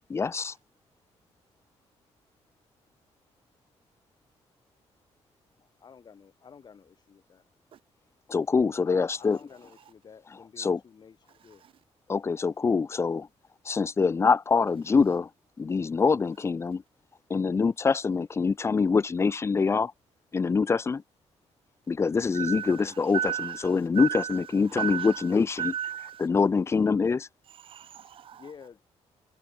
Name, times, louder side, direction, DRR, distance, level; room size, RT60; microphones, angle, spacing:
voice 1, 0.1-0.5 8.3-9.4 10.6-10.8 12.1-13.3 13.7-15.3 15.6-16.8 17.3-19.9 20.3-21.0 21.9-23.2 23.6-25.7 26.2-27.3, left 5 dB, 25° left, 0.4 m, -24 dB
voice 2, 5.8-7.4 8.8-11.6 28.3-28.8, left 6 dB, 40° left, 1.3 m, -50 dB
voice 3, 11.3-11.7 22.3-26.3 27.5-28.5, right 9 dB, 50° right, 0.4 m, -35 dB
cardioid pair, 125°, 12 cm